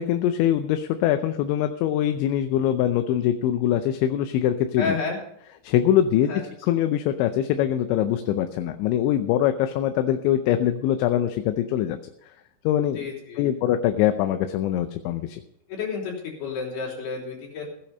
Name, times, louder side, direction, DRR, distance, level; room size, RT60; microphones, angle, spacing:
voice 1, 0.0-5.0 5.6-12.0 12.6-13.1 13.4-15.4, left 11 dB, 80° left, 8 dB, 3.0 m, -23 dB
voice 2, 4.8-5.2 6.3-6.4 12.9-13.5 15.7-17.7, left 5 dB, 60° left, -2 dB, 5.3 m, -30 dB
16.5 x 8.7 x 5.4 m, 0.76 s
omnidirectional pair, 5.3 m